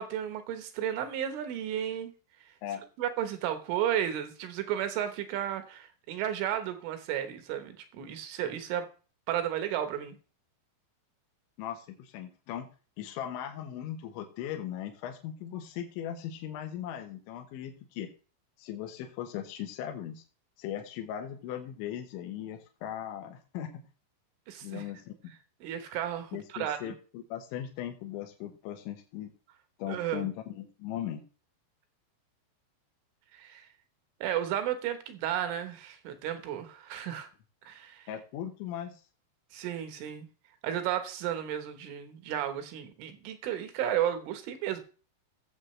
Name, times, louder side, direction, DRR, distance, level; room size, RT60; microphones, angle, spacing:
voice 1, 0.0-2.1 3.0-8.9 9.3-10.2 24.5-24.8 25.6-27.0 29.9-30.3 33.3-33.7 34.2-37.3 37.7-38.1 39.5-40.3 40.6-44.8, right 10 dB, 75° right, 8 dB, 3.7 m, -33 dB
voice 2, 11.6-12.7 13.0-18.1 18.6-20.2 20.6-23.7 24.6-25.3 26.3-29.3 29.8-31.2 38.1-39.0, left 10 dB, 75° left, 4 dB, 3.5 m, -38 dB
18.5 x 7.5 x 3.2 m, 0.37 s
omnidirectional pair, 5.7 m